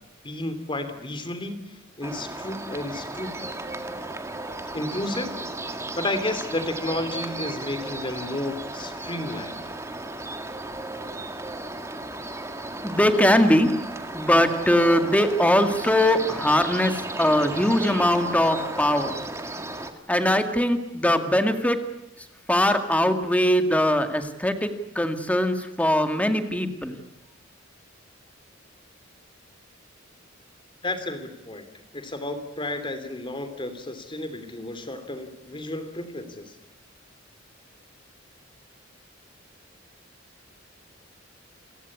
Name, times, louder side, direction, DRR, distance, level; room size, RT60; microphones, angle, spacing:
voice 1, 0.2-1.6 2.0-3.3 4.7-5.3 5.9-9.6 30.8-31.6 31.9-36.5, left 1 dB, 25° left, 10 dB, 3.1 m, -32 dB
sound 1, 2.0-19.9, right 2 dB, 15° right, 1.9 m, -35 dB
voice 2, 12.8-13.7 14.1-16.9 17.2-19.1 20.1-21.8 22.5-24.7 25.0-26.9, left 1 dB, 5° left, 7 dB, 2.1 m, -21 dB
29.0 x 16.5 x 9.8 m, 0.90 s
head